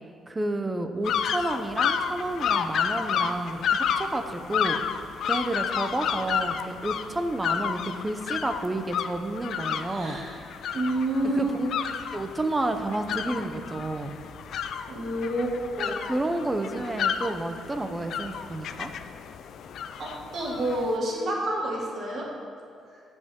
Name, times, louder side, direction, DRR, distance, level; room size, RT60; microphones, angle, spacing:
voice 1, 0.3-4.8 5.2-10.2 11.3-11.7 12.1-14.1 16.0-18.9, right 2 dB, 20° right, 7 dB, 0.7 m, -30 dB
sound 1, 1.0-20.9, left 7 dB, 70° left, 0.4 m, -31 dB
voice 2, 9.9-10.4 10.7-11.5 14.9-16.0 20.0-22.3, right 1 dB, 55° right, -3 dB, 2.1 m, -29 dB
15.5 x 5.3 x 3.7 m, 2.4 s
cardioid pair, 90°, 0 cm